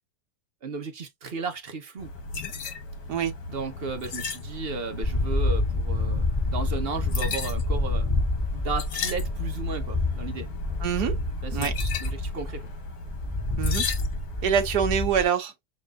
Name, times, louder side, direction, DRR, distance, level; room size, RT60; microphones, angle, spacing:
voice 1, 0.6-2.1 3.5-8.1 8.5-10.5 11.4-12.7, right 4 dB, 45° right, 1.0 m, -35 dB
sound 1, 2.0-14.7, left 4 dB, 80° left, 1.9 m, -36 dB
sound 2, 5.0-15.2, left 2 dB, 20° left, 2.4 m, -28 dB
voice 2, 10.8-11.1 11.5-11.7 13.6-13.8 14.4-15.5, right 8 dB, 75° right, 1.4 m, -25 dB
6.6 x 3.2 x 2.3 m
omnidirectional pair, 1.8 m